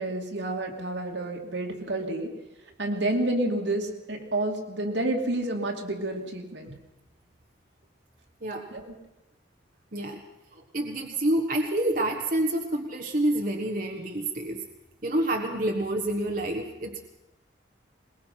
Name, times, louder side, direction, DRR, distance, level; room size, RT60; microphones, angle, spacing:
voice 1, 0.0-2.3 2.8-6.7 8.7-8.9, right 1 dB, 75° right, 1 dB, 2.7 m, -29 dB
voice 2, 10.5-14.6 15.0-17.0, right 1 dB, 45° right, 2 dB, 1.4 m, -28 dB
21.5 x 21.0 x 5.9 m, 1.0 s
head